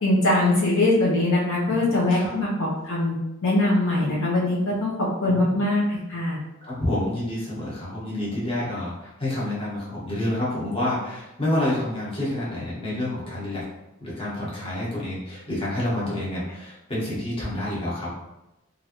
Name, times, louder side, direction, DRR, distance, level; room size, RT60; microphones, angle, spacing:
voice 1, 0.0-3.1 3.4-6.4, left 2 dB, 65° left, -5 dB, 0.7 m, -22 dB
voice 2, 6.6-13.6 14.0-18.1, left 1 dB, 25° left, -7 dB, 1.0 m, -28 dB
3.2 x 2.5 x 2.9 m, 0.93 s
head